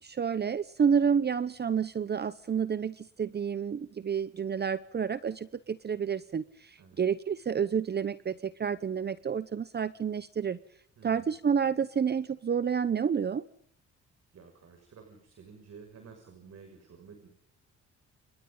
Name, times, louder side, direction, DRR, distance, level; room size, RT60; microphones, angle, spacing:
voice 1, 0.0-10.6 11.0-13.4, right 7 dB, 35° right, 14 dB, 0.9 m, -29 dB
voice 2, 11.0-11.3 14.3-17.3, right 5 dB, 60° right, 5 dB, 6.2 m, -52 dB
29.5 x 27.0 x 3.9 m, 0.63 s
cardioid pair, 90°, 30 cm